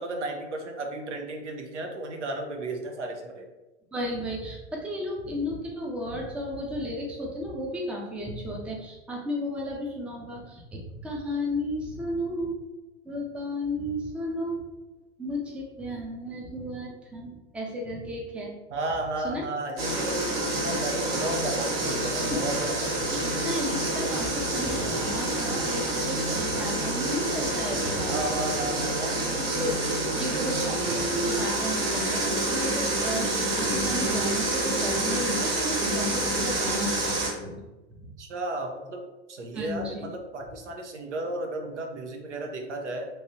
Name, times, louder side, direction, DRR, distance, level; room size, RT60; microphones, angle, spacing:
voice 1, 0.0-3.5 18.7-23.2 28.1-29.2 38.2-39.0 39.3-43.1, right 2 dB, 80° right, 3 dB, 0.7 m, -34 dB
voice 2, 3.9-12.6 13.0-14.6 15.2-18.5 19.2-19.5 22.3-22.4 23.1-28.3 29.4-29.8 30.1-37.7 38.0-38.1 39.5-40.1, equal, 5° right, -1 dB, 0.4 m, -33 dB
sound 1, 19.8-37.3, right 1 dB, 50° right, 1.2 m, -27 dB
3.1 x 2.8 x 2.6 m, 1.1 s
figure-of-eight pair, 90°, 35 cm